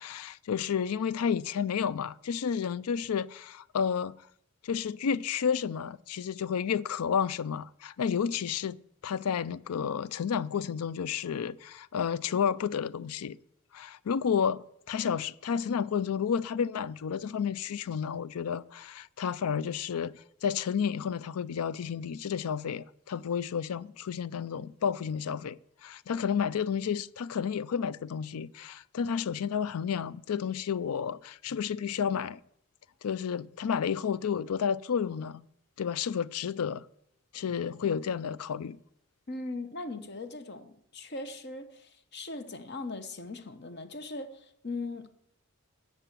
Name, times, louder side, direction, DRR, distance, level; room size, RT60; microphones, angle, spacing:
voice 1, 0.0-4.2 4.6-8.8 9.0-13.4 13.7-20.1 20.4-32.4 33.0-35.4 35.8-36.9 37.3-38.8, left 7 dB, 80° left, 0.4 m, -31 dB
voice 2, 39.3-45.1, left 2 dB, 50° left, 1.0 m, -39 dB
13.5 x 8.0 x 7.4 m
head